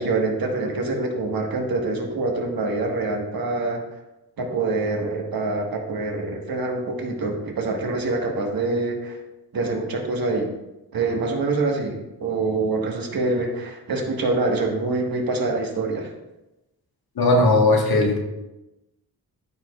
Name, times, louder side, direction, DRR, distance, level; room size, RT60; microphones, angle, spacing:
voice 1, 0.0-3.8 4.4-9.2 9.5-10.5 10.9-16.1, right 3 dB, 65° right, 1 dB, 1.5 m, -25 dB
voice 2, 17.1-18.2, left 2 dB, 65° left, 1 dB, 1.5 m, -17 dB
13.5 x 5.0 x 2.4 m, 0.97 s
wide cardioid pair, 150°, 39 cm